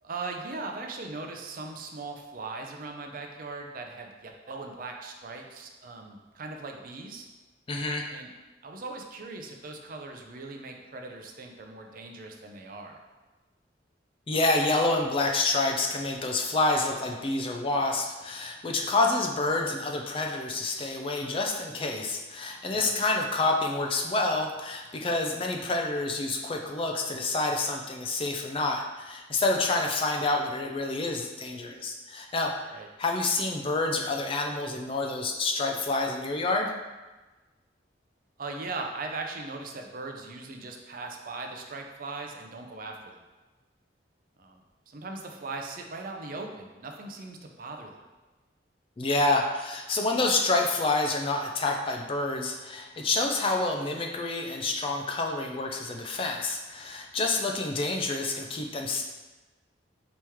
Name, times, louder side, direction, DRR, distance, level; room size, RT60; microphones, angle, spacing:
voice 1, 0.0-7.3 8.1-8.3 8.6-13.0 22.7-22.9 32.7-32.9 38.4-43.2 44.4-48.1, right 3 dB, 50° right, 3 dB, 0.5 m, -39 dB
voice 2, 7.7-8.1 14.3-36.7 49.0-59.0, left 2 dB, 30° left, 2 dB, 0.4 m, -28 dB
4.5 x 3.0 x 3.5 m, 1.2 s
head